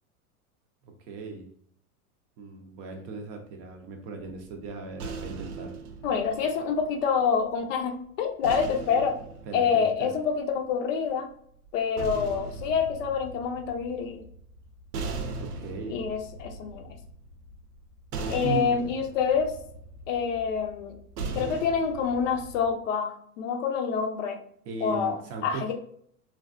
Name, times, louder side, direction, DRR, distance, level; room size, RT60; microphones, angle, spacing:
voice 1, 0.8-1.4 2.4-5.7 9.5-10.1 15.4-16.0 18.4-18.8 24.7-25.7, right 4 dB, 35° right, 3 dB, 0.5 m, -37 dB
sound 1, 4.2-7.5 8.4-10.7 11.6-22.7, right 3 dB, 80° right, 0.7 m, -39 dB
voice 2, 6.0-9.2 9.5-11.3 11.7-14.2 15.9-16.9 18.3-19.5 20.1-21.0 21.3-24.4 24.8-25.2 25.4-25.7, left 6 dB, 55° left, 5 dB, 0.6 m, -27 dB
3.1 x 2.3 x 2.4 m, 0.65 s
hypercardioid pair, 110°, 45 cm